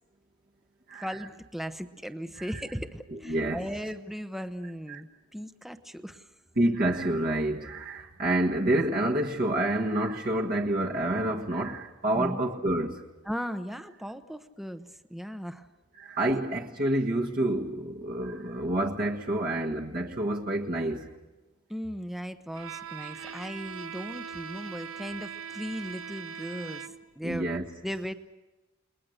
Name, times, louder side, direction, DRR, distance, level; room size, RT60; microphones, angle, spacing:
voice 1, 0.9-6.3 12.1-12.4 13.2-15.7 21.7-27.5 27.8-28.1, equal, ahead, 0.8 m, -37 dB
voice 2, 3.1-3.6 4.9-5.0 6.6-13.0 16.0-21.1 23.1-23.3 26.7-26.8 27.2-27.6, right 1 dB, 45° right, 1.5 m, -28 dB
Bowed string instrument, 22.5-27.2, right 7 dB, 80° right, 1.0 m, -41 dB
29.5 x 21.0 x 6.6 m
head